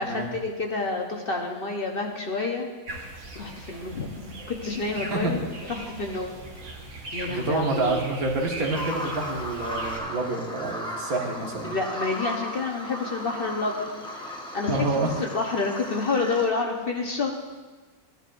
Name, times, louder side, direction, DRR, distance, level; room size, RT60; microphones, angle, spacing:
voice 1, 0.0-3.1 3.3-5.4 5.7-6.4 7.1-8.0 11.6-13.9 14.2-17.3, left 3 dB, 45° left, 1 dB, 1.0 m, -29 dB
sound 1, 2.9-10.0, right 2 dB, 55° right, 1.5 m, -40 dB
voice 2, 5.1-5.5 7.3-11.7 14.7-15.1, right 2 dB, 75° right, -1 dB, 2.0 m, -28 dB
Bird vocalization bird call bird song, 8.7-16.5, equal, 5° left, 0.9 m, -36 dB
15.0 x 10.0 x 2.6 m, 1.4 s
omnidirectional pair, 1.5 m